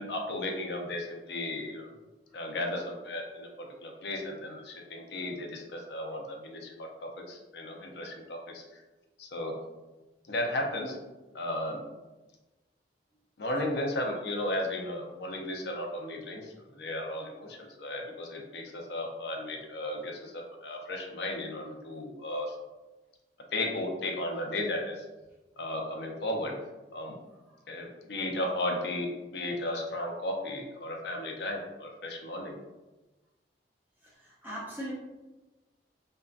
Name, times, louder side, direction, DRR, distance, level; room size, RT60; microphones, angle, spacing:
voice 1, 0.0-1.9 2.3-8.6 9.2-9.5 10.3-11.0 11.3-11.8 13.4-22.6 23.5-25.0 25.6-26.6 26.9-27.1 27.7-32.6, left 1 dB, 65° left, 1 dB, 0.4 m, -35 dB
voice 2, 34.2-34.9, equal, 10° right, -7 dB, 0.3 m, -39 dB
2.6 x 2.1 x 2.3 m, 1.1 s
head